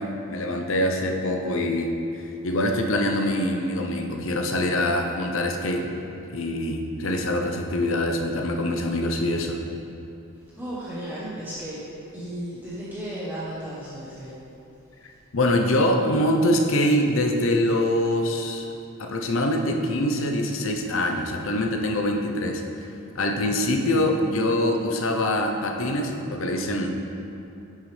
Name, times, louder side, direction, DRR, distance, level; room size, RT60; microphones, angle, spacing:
voice 1, 0.0-1.9 2.4-5.9 6.3-9.6 15.3-18.7 19.0-22.6 23.1-26.9, left 1 dB, 65° left, 3 dB, 0.7 m, -24 dB
voice 2, 10.6-11.8 12.1-14.4, right 1 dB, 10° right, -9 dB, 0.9 m, -34 dB
9.4 x 6.3 x 3.3 m, 2.8 s
head